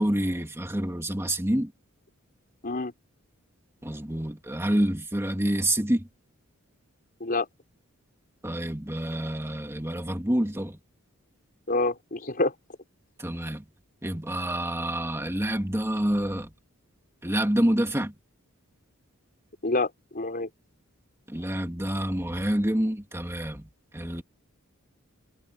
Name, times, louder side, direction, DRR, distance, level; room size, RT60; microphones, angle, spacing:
voice 1, 0.0-1.7 3.8-6.1 8.4-10.8 13.2-13.6 14.0-16.5 17.2-18.1 21.3-24.2, right 1 dB, 10° right, 2.3 m, -27 dB
voice 2, 11.7-12.5 19.6-20.5, left 2 dB, 45° left, 4.3 m, -27 dB
head